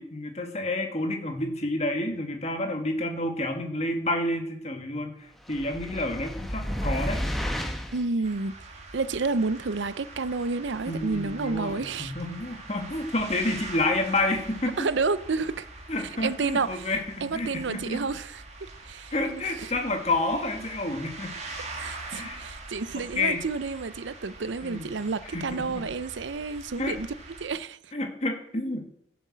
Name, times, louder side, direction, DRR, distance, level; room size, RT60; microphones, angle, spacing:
voice 1, 0.0-7.2 10.9-14.8 15.9-18.1 19.1-21.3 22.1-22.5 23.0-23.4 24.6-24.9 25.3-25.9 26.8-26.9 27.9-28.8, left 2 dB, 35° left, 2.1 m, -29 dB
sound 1, 5.5-8.1, equal, ahead, 1.2 m, -31 dB
voice 2, 7.9-8.5 8.9-12.1 14.8-15.7 16.2-16.9 17.2-18.4 18.8-19.7 21.7-27.1 27.4-27.9, right 4 dB, 75° right, 0.6 m, -30 dB
sound 2, 8.2-27.5, right 2 dB, 35° right, 2.2 m, -43 dB
15.5 x 7.2 x 7.4 m
head